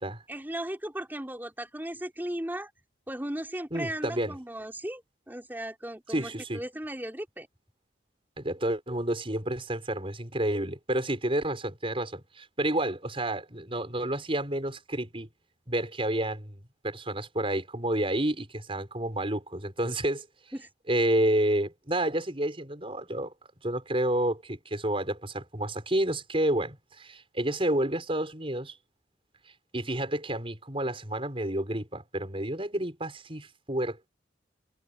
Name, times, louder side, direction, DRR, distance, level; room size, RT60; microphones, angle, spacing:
voice 1, 0.3-2.7 3.1-7.5 20.5-20.7, right 1 dB, 10° right, 3.9 m, -36 dB
voice 2, 3.7-4.4 6.1-6.6 8.4-15.3 15.7-20.3 20.9-23.3 23.6-28.8 29.7-34.1, right 1 dB, 30° right, 5.9 m, -30 dB
head